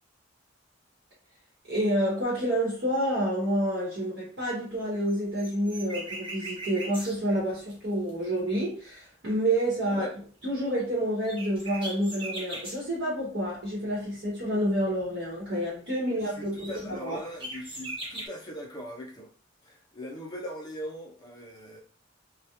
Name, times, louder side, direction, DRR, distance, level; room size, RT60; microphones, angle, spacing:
voice 1, 1.7-10.1 10.4-17.2, right 1 dB, 55° right, 0.8 m, -28 dB
sound 1, 4.8-8.6 10.4-10.5 10.8-10.9 11.2-12.8 13.4-15.2 15.5-15.7 15.9-16.0 16.3-18.3, right 1 dB, 25° right, 0.7 m, -40 dB
voice 2, 9.8-10.2 16.0-19.3 19.6-21.8, equal, 20° left, 0.5 m, -40 dB
2.3 x 2.1 x 2.8 m
head